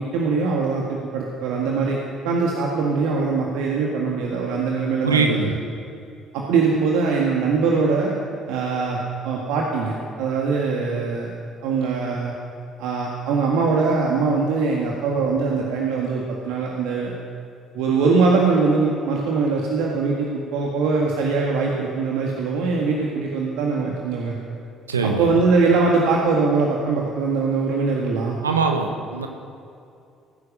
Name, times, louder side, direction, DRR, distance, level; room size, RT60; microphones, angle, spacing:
voice 1, 0.0-2.0 2.2-5.5 6.3-8.1 8.5-9.0 9.2-11.3 11.6-12.3 12.8-17.1 17.7-24.4 25.0-28.4, right 4 dB, 70° right, -1 dB, 1.6 m, -22 dB
voice 2, 5.0-5.5 24.9-25.3 28.4-29.3, right 4 dB, 90° right, 4 dB, 1.0 m, -22 dB
18.0 x 9.8 x 6.6 m, 2.5 s
hypercardioid pair, 50°, 0 cm